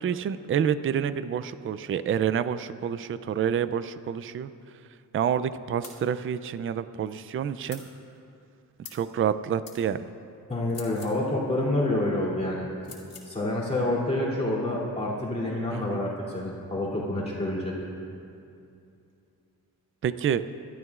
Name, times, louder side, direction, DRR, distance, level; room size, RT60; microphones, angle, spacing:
voice 1, 0.0-4.5 5.1-7.8 8.9-10.0 15.7-16.0 20.0-20.4, right 8 dB, 40° right, 13 dB, 0.4 m, -28 dB
sound 1, 5.8-6.0 7.7-7.9 8.8-9.1 9.6-9.8 10.7-11.2 12.8-13.3, left 6 dB, 75° left, 2.5 m, -44 dB
voice 2, 10.5-12.7 13.3-17.8, left 1 dB, 20° left, -6 dB, 2.9 m, -28 dB
27.0 x 12.5 x 2.4 m, 2.5 s
wide cardioid pair, 135°, 33 cm